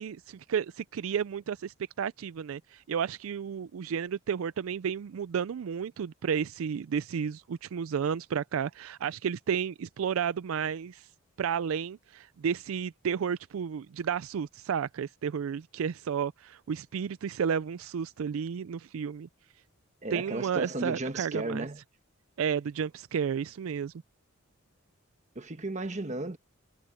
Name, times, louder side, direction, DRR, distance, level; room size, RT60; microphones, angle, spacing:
voice 1, 0.0-11.1 11.4-19.3 20.1-21.7 22.4-23.9, right 7 dB, 75° right, 0.4 m, -32 dB
voice 2, 20.0-21.8 25.3-26.4, right 2 dB, 35° right, 1.4 m, -34 dB
head